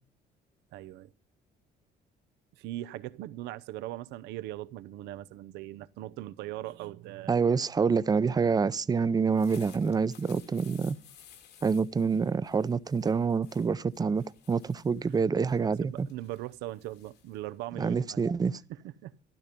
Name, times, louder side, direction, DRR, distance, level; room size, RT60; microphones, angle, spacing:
voice 1, 0.7-1.1 2.6-7.4 15.0-15.2 15.6-18.2 18.7-19.1, right 15 dB, 90° right, 0.7 m, -40 dB
voice 2, 7.3-11.0 11.6-16.1 17.8-18.6, right 5 dB, 20° right, 0.6 m, -27 dB
sound 1, 9.1-18.4, left 9 dB, 75° left, 2.5 m, -57 dB
13.0 x 12.0 x 5.2 m
cardioid pair, 110°, 17 cm